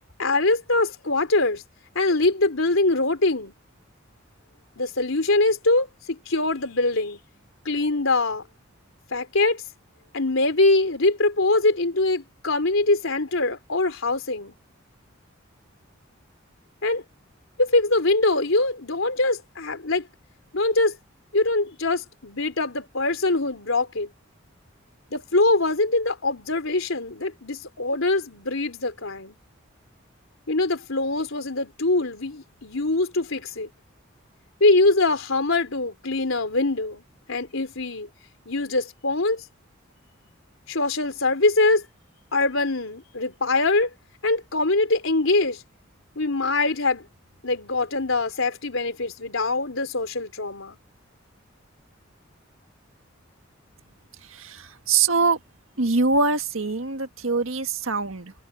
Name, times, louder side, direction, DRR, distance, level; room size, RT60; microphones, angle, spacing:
voice 1, 0.2-1.6 2.0-3.5 4.8-7.2 7.7-8.4 9.1-9.6 10.1-14.5 16.8-17.0 17.6-20.1 20.5-21.0 21.3-24.1 25.1-29.4 30.5-33.7 34.6-37.0 37.3-38.1 38.5-39.4 40.7-41.8 42.3-43.9 44.2-45.6 46.2-47.0 47.4-50.8, left 2 dB, 80° left, 3.6 m, -23 dB
voice 2, 54.2-55.4 55.8-58.3, right 4 dB, 85° right, 1.7 m, -23 dB
head